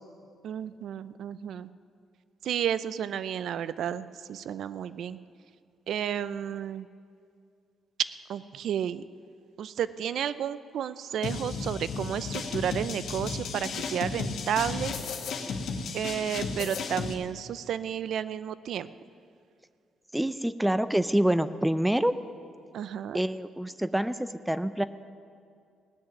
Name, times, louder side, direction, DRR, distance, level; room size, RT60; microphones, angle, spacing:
voice 1, 0.4-1.7 2.4-5.2 5.9-6.9 8.3-9.0 9.6-14.9 15.9-18.9 22.7-23.2, right 9 dB, 70° right, 15 dB, 0.5 m, -32 dB
sound 1, 11.2-17.1, left 4 dB, 70° left, 1.5 m, -34 dB
voice 2, 20.1-22.1 23.1-24.8, right 1 dB, 5° right, 13 dB, 0.5 m, -26 dB
17.5 x 6.6 x 9.1 m, 2.3 s
cardioid pair, 90°, 0 cm